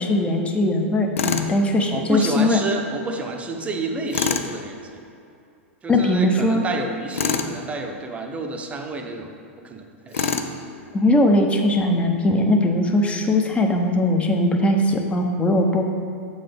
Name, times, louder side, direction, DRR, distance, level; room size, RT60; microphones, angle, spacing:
voice 1, 0.0-2.6 5.9-6.7 10.9-15.8, left 1 dB, 15° left, 3 dB, 0.7 m, -20 dB
Tools, 1.2-1.5 4.1-4.5 7.1-7.5 10.1-10.6, left 6 dB, 80° left, 0.5 m, -24 dB
voice 2, 1.9-5.1 5.8-9.4 9.6-10.3, right 3 dB, 20° right, 3 dB, 0.7 m, -30 dB
7.5 x 4.0 x 5.1 m, 2.6 s
hypercardioid pair, 105°, 7 cm